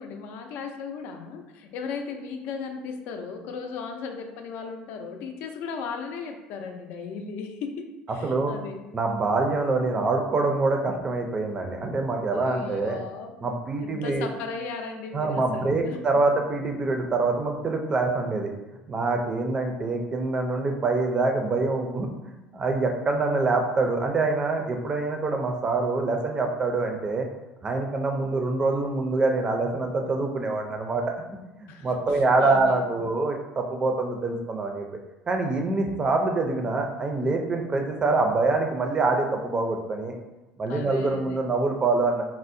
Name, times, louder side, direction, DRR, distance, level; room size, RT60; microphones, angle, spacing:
voice 1, 0.0-7.9 8.1-8.8 12.3-13.3 13.8-16.2 31.7-31.9 32.4-32.9 40.7-41.4, left 5 dB, 70° left, 5 dB, 0.4 m, -36 dB
voice 2, 8.2-8.5 8.9-13.0 13.4-14.3 15.1-18.5 18.9-27.3 27.6-31.0 31.6-34.9 35.3-40.1 40.6-42.2, right 3 dB, 25° right, 3 dB, 0.4 m, -25 dB
4.2 x 2.0 x 2.6 m, 1.0 s
cardioid pair, 125°, 3 cm